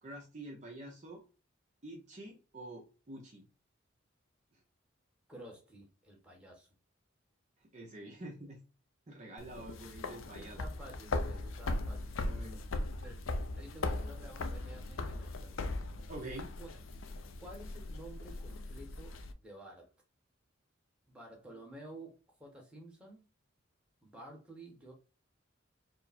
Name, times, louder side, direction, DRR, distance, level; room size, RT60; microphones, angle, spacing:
voice 1, 0.0-1.2 1.8-3.5 7.7-8.6 9.1-10.6 12.2-12.6 16.1-16.5, right 1 dB, 35° right, 0.8 m, -47 dB
voice 2, 5.3-6.7 10.3-12.2 13.0-13.2 13.5-15.7 16.6-16.7 17.4-19.9 21.1-23.3 24.0-24.9, right 1 dB, 5° right, 1.2 m, -52 dB
sound 1, 9.4-19.3, left 2 dB, 80° left, 0.5 m, -39 dB
4.7 x 2.1 x 4.2 m
head